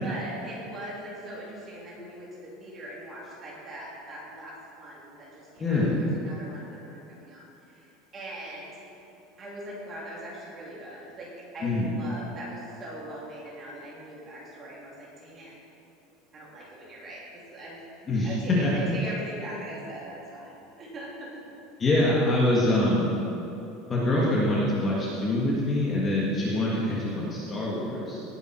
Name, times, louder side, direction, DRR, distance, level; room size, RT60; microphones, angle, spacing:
voice 1, 0.0-8.7 9.4-15.5 16.3-21.3 21.7-21.8, right 1 dB, 20° right, -5 dB, 2.9 m, -41 dB
voice 2, 5.6-6.0 11.6-11.9 18.1-18.3 18.6-18.7 21.8-23.1 23.9-28.2, left 1 dB, 20° left, -5 dB, 1.6 m, -25 dB
18.0 x 8.4 x 4.4 m, 2.9 s
cardioid pair, 175°, 0 cm